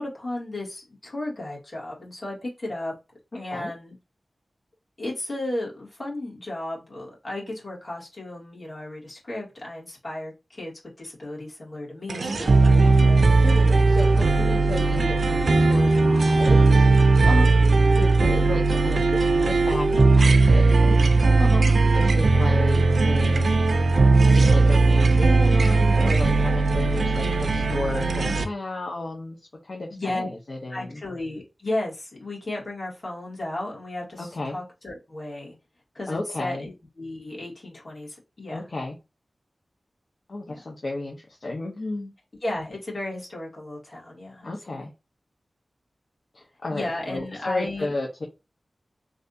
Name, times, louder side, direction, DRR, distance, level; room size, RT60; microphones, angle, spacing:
voice 1, 0.0-2.9 3.3-4.0 5.0-13.2 14.9-15.1 17.2-17.5 21.4-21.7 26.8-27.0 29.9-30.3 30.7-35.5 35.9-38.7 40.5-40.6 42.4-44.5 44.8-44.9 46.7-47.9, left 1 dB, 50° left, -4 dB, 1.8 m, -34 dB
sound 1, 12.1-28.4, right 3 dB, 85° right, 0.4 m, -18 dB
voice 2, 12.9-17.1 18.0-21.0 21.9-23.5 24.3-29.4 29.6-31.0 34.2-34.6 36.1-36.7 38.5-39.0 40.3-42.1 44.4-44.9 46.3-48.2, left 2 dB, 65° left, -1 dB, 0.7 m, -33 dB
3.3 x 2.5 x 2.7 m, 0.26 s
wide cardioid pair, 55°, 0 cm